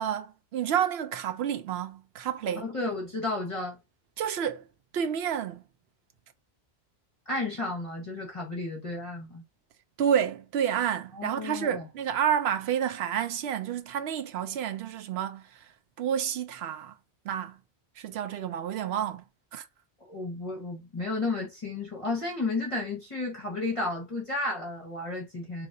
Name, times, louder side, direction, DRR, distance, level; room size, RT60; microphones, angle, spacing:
voice 1, 0.0-2.6 4.2-4.7 4.9-5.6 10.0-15.7 16.0-16.9 17.2-17.6 18.0-19.2 19.5-19.7, right 9 dB, 75° right, 0.8 m, -29 dB
voice 2, 2.6-3.8 7.3-9.4 11.1-11.8 20.1-25.7, left 2 dB, 30° left, 1.1 m, -32 dB
3.9 x 2.9 x 2.6 m
omnidirectional pair, 1.1 m